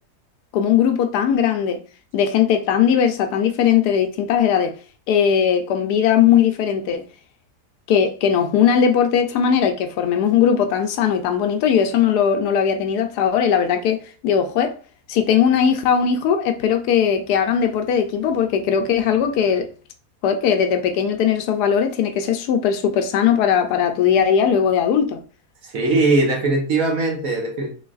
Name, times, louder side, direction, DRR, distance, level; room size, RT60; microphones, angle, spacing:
voice 1, 0.5-1.8 2.1-4.7 5.1-7.0 7.9-14.0 14.2-14.7 15.1-19.7 20.2-25.2, left 8 dB, 80° left, 1.1 m, -19 dB
voice 2, 25.6-27.7, right 2 dB, 65° right, 1.3 m, -20 dB
4.0 x 3.2 x 2.3 m
omnidirectional pair, 1.7 m